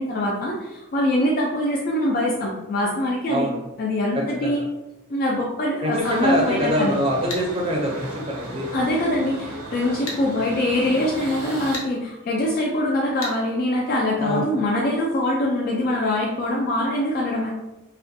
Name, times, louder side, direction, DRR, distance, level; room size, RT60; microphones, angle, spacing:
voice 1, 0.0-3.5 3.8-4.6 5.1-7.0 8.7-17.5, left 1 dB, 40° left, -3 dB, 0.3 m, -23 dB
voice 2, 3.3-3.6 4.1-4.6 5.8-8.7 14.2-14.4, equal, 25° right, -1 dB, 0.5 m, -24 dB
sound 1, 6.0-11.8, right 1 dB, 75° right, 0.5 m, -35 dB
sound 2, 7.3-7.5 10.1-10.2 11.7-11.9 13.2-13.4, left 2 dB, 75° left, 0.6 m, -31 dB
2.4 x 2.1 x 2.6 m, 0.97 s
head